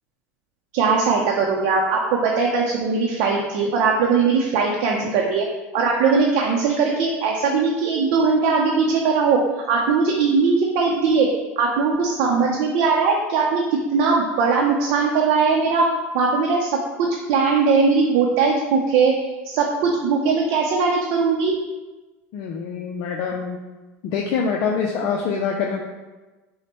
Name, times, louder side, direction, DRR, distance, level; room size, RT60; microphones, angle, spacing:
voice 1, 0.7-5.4 5.7-9.4 9.7-11.3 11.6-13.6 13.9-15.8 16.1-16.7 17.3-19.1 19.4-21.6, right 4 dB, 65° right, -1 dB, 0.6 m, -20 dB
voice 2, 22.3-23.6 24.0-25.8, left 6 dB, 60° left, 0 dB, 0.5 m, -25 dB
5.8 x 2.1 x 2.9 m, 1.2 s
hypercardioid pair, 95°, 8 cm